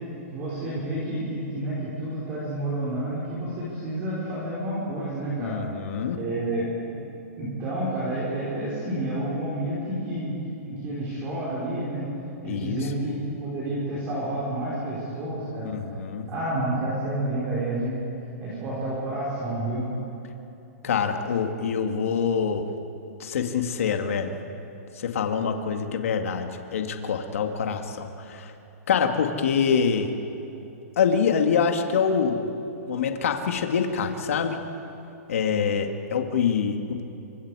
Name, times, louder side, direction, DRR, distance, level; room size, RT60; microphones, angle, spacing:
voice 1, 0.3-5.6 6.1-7.0 7.4-10.3 10.6-12.1 12.4-13.2 13.4-15.7 16.3-18.0 18.4-19.9, right 1 dB, 20° right, -8 dB, 4.5 m, -29 dB
voice 2, 5.4-6.2 12.4-12.9 15.6-16.3 20.8-22.7 23.2-24.3 25.0-28.5 28.9-30.1 31.0-32.5 32.9-34.6 35.3-37.1, left 6 dB, 60° left, 5 dB, 2.1 m, -25 dB
29.5 x 25.5 x 4.9 m, 2.9 s
hypercardioid pair, 180°, 8 cm